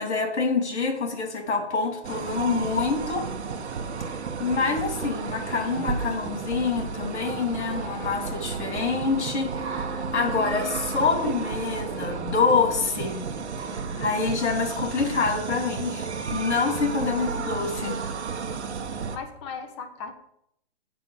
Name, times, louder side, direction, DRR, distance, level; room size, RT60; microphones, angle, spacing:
voice 1, 0.0-3.2 4.0-4.1 4.4-13.2 13.9-18.0, left 4 dB, 80° left, 3 dB, 3.3 m, -26 dB
sound 1, 2.0-19.2, right 5 dB, 75° right, 1.4 m, -32 dB
voice 2, 18.9-20.1, left 5 dB, 25° left, 7 dB, 0.9 m, -38 dB
7.7 x 5.8 x 7.3 m, 0.74 s
hypercardioid pair, 155°, 34 cm